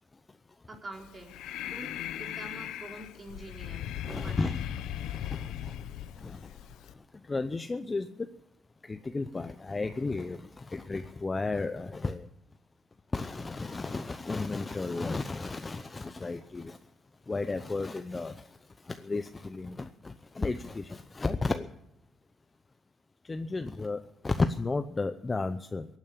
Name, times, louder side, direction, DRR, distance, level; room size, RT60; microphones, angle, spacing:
voice 1, 0.7-1.4 1.7-4.6, right 2 dB, 35° right, 4.0 m, -46 dB
Breathing, 1.0-6.9, left 11 dB, 90° left, 0.7 m, -38 dB
voice 2, 4.0-4.6 5.1-5.7 6.2-6.5 7.3-8.2 8.8-12.3 13.1-16.8 17.3-18.4 18.9-21.7 23.3-25.9, left 3 dB, 25° left, 0.7 m, -33 dB
16.0 x 9.1 x 8.5 m
cardioid pair, 90°, 0 cm